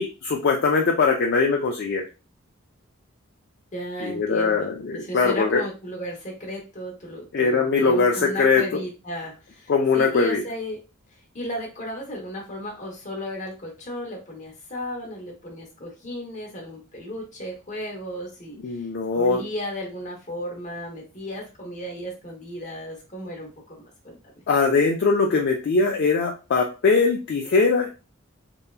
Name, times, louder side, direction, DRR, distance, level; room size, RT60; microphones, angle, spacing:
voice 1, 0.0-2.0 4.0-5.6 7.3-8.8 9.7-10.4 18.6-19.4 24.5-27.9, left 4 dB, 55° left, 0 dB, 0.3 m, -21 dB
voice 2, 3.7-10.8 11.3-18.8 19.1-24.4, equal, 35° left, 0 dB, 0.8 m, -35 dB
2.8 x 2.2 x 2.3 m, 0.31 s
head